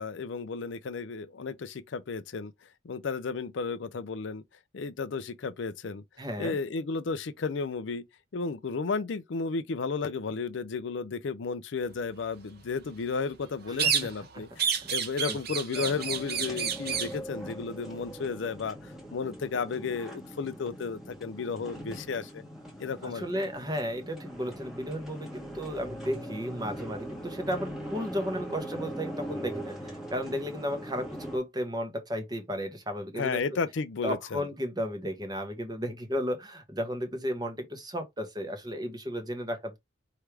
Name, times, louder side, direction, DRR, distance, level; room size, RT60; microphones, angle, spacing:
voice 1, 0.0-2.5 2.8-4.4 4.7-6.0 6.4-8.0 8.3-22.4 22.8-23.2 33.2-34.5, left 4 dB, 60° left, 0.4 m, -33 dB
voice 2, 6.2-6.6 13.8-13.9 14.8-14.9 15.3-15.4 23.0-33.4 34.0-39.8, equal, 20° right, 1.2 m, -34 dB
sound 1, 13.8-14.3 14.6-17.2, right 7 dB, 50° right, 1.1 m, -29 dB
sound 2, 15.7-31.4, right 1 dB, ahead, 1.4 m, -41 dB
4.7 x 3.3 x 3.3 m
head